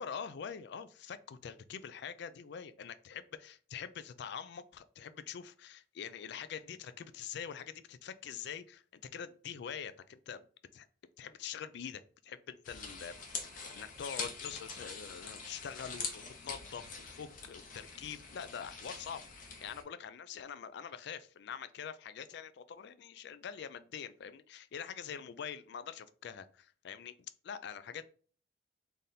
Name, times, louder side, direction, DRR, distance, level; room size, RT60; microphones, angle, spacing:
voice 1, 0.0-10.5 10.7-10.9 11.2-13.1 13.5-27.1 27.4-28.1, left 7 dB, 65° left, 13 dB, 0.4 m, -45 dB
sound 1, 12.6-19.8, left 5 dB, 45° left, 0.7 m, -44 dB
3.4 x 2.7 x 3.9 m, 0.42 s
head